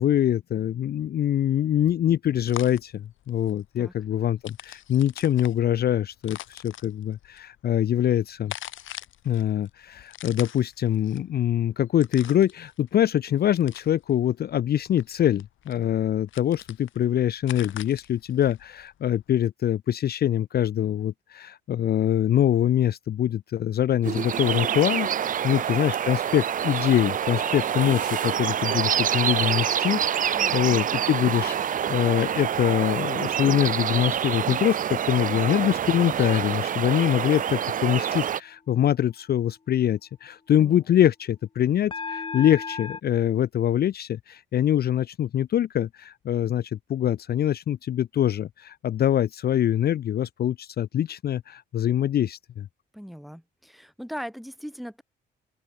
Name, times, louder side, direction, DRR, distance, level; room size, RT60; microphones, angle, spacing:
voice 1, 0.0-8.5 9.2-52.7, left 11 dB, 55° left, 0.6 m, -24 dB
sound 1, 2.4-19.5, left 12 dB, 80° left, 7.8 m, -44 dB
sound 2, 24.0-38.4, right 9 dB, 45° right, 0.5 m, -26 dB
sound 3, 27.2-35.5 35.9-36.3 41.9-43.0, left 4 dB, 25° left, 1.0 m, -41 dB
voice 2, 30.4-30.7 40.6-40.8 52.9-55.0, equal, ahead, 3.0 m, -39 dB
open air
cardioid pair, 90°, 20 cm